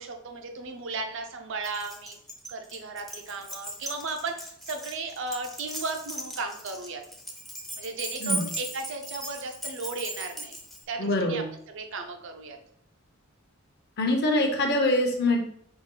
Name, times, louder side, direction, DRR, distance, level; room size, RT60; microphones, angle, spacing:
voice 1, 0.0-2.2 2.5-7.0 7.8-10.6 10.9-12.6, right 3 dB, 65° right, 5 dB, 0.6 m, -35 dB
Keys jangling, 1.6-10.8, right 1 dB, ahead, 0.6 m, -38 dB
voice 2, 11.0-11.4 14.0-15.4, left 1 dB, 50° left, 3 dB, 0.8 m, -24 dB
5.1 x 2.4 x 3.7 m, 0.68 s
head